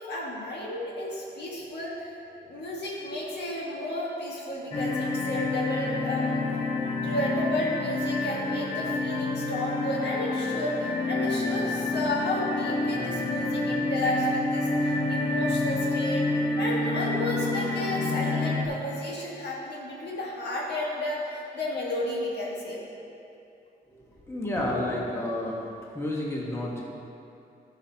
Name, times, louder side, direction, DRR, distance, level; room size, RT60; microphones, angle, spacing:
voice 1, 0.1-2.1 2.4-6.4 7.0-22.8, left 1 dB, 80° left, -4 dB, 1.6 m, -32 dB
sound 1, 4.7-18.7, left 2 dB, 35° left, 1.0 m, -28 dB
voice 2, 24.3-25.6 25.9-26.8, left 1 dB, 15° left, -4 dB, 1.3 m, -30 dB
13.5 x 5.9 x 2.9 m, 2.7 s
wide cardioid pair, 130°, 17 cm